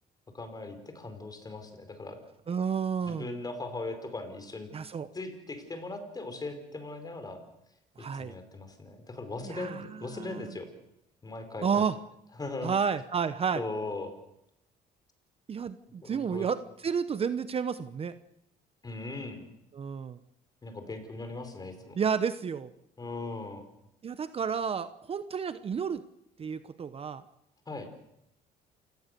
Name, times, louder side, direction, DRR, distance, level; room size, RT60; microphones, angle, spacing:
voice 1, 0.3-2.2 3.1-4.7 5.1-7.4 8.0-10.7 11.2-11.8 12.4-12.7 13.5-14.1 16.0-16.5 18.8-19.5 20.6-22.0 23.0-23.6 27.7-27.9, left 2 dB, 25° left, 8 dB, 5.0 m, -39 dB
voice 2, 2.5-3.3 4.7-5.1 8.0-8.4 9.4-10.6 11.6-12.0 12.6-13.6 15.5-18.2 19.7-20.2 22.0-22.7 24.0-26.0 26.4-27.2, right 6 dB, 35° right, 13 dB, 0.9 m, -31 dB
28.5 x 17.5 x 6.8 m, 0.78 s
cardioid pair, 110°, 17 cm